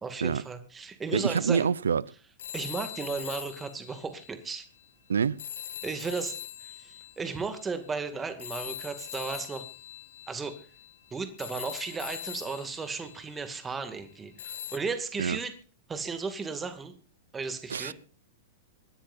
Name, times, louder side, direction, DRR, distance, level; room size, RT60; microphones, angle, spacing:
voice 1, 0.0-1.7 2.5-4.7 5.8-9.7 10.3-10.6 11.1-15.5 15.9-16.9 17.3-17.9, right 4 dB, 15° right, 2.3 m, -35 dB
voice 2, 1.1-2.0 5.1-5.4 15.2-15.4 17.7-17.9, right 6 dB, 85° right, 0.6 m, -26 dB
sound 1, 2.4-4.9 5.4-13.9 14.4-14.8, left 11 dB, 70° left, 1.1 m, -42 dB
26.0 x 10.0 x 2.6 m
hypercardioid pair, 110°, 0 cm